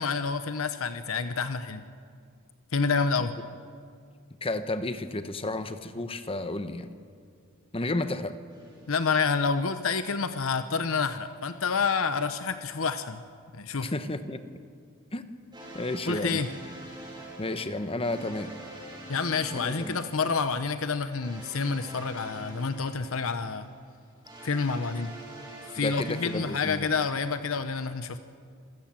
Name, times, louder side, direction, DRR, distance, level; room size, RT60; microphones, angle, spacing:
voice 1, 0.0-1.8 2.7-3.4 8.9-13.2 13.5-13.9 16.1-16.5 19.1-23.7 24.4-25.1 25.7-28.2, left 5 dB, 65° left, 10 dB, 0.9 m, -28 dB
voice 2, 4.4-6.9 7.7-8.4 13.8-14.4 15.1-15.2 15.7-16.4 17.4-18.5 19.5-20.0 25.8-26.9, left 2 dB, 25° left, 10 dB, 1.0 m, -32 dB
sound 1, 8.5-9.7 15.5-27.5, right 1 dB, 20° right, 7.3 m, -45 dB
26.5 x 16.5 x 7.5 m, 2.2 s
head